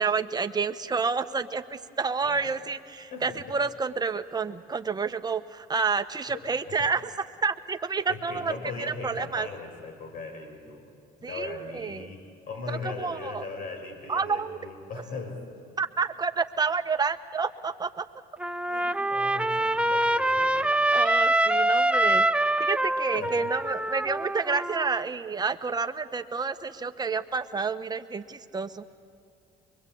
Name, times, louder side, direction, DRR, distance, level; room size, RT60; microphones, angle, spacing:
voice 1, 0.0-7.0 7.4-8.5 8.8-9.5 11.2-12.1 12.7-13.4 14.1-14.6 15.8-18.1 20.9-22.3 22.6-28.8, right 5 dB, 25° right, 9 dB, 1.2 m, -29 dB
voice 2, 3.1-3.5 6.3-6.9 8.1-10.9 11.2-15.7 18.7-20.8 23.1-23.5, left 4 dB, 60° left, 4 dB, 4.6 m, -39 dB
Trumpet, 18.4-25.0, right 1 dB, 5° right, 0.5 m, -25 dB
24.0 x 23.5 x 8.6 m, 2.5 s
cardioid pair, 110°, 17 cm